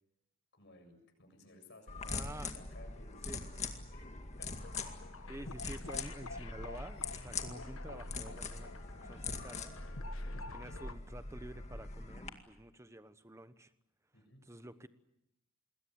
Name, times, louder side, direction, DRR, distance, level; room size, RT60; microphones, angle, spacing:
voice 1, 0.5-3.6 3.9-4.1 4.4-4.5 4.8-4.9 5.9-6.4 10.2-10.4 14.1-14.4, left 2 dB, 55° left, 5 dB, 7.4 m, -58 dB
sound 1, 1.9-12.3, left 3 dB, 35° left, 2.1 m, -42 dB
voice 2, 2.1-2.5 3.2-3.7 5.3-9.7 10.5-13.7 14.4-14.9, right 1 dB, 15° right, 12 dB, 1.1 m, -50 dB
sound 2, 4.6-10.9, left 3 dB, 90° left, 1.2 m, -50 dB
27.5 x 21.5 x 8.1 m, 0.85 s
head